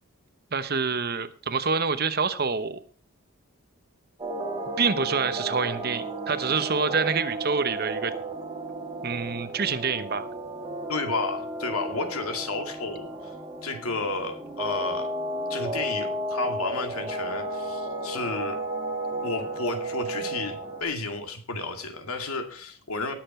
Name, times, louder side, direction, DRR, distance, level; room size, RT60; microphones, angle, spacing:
voice 1, 0.5-2.8 4.8-8.1 9.0-10.3, right 5 dB, 45° right, 11 dB, 1.0 m, -27 dB
sound 1, 4.2-20.8, right 1 dB, 20° right, 2.0 m, -33 dB
voice 2, 10.9-13.3 13.6-15.1 15.5-18.6 19.2-23.1, left 3 dB, 85° left, 5 dB, 2.3 m, -32 dB
19.5 x 6.9 x 4.3 m, 0.42 s
head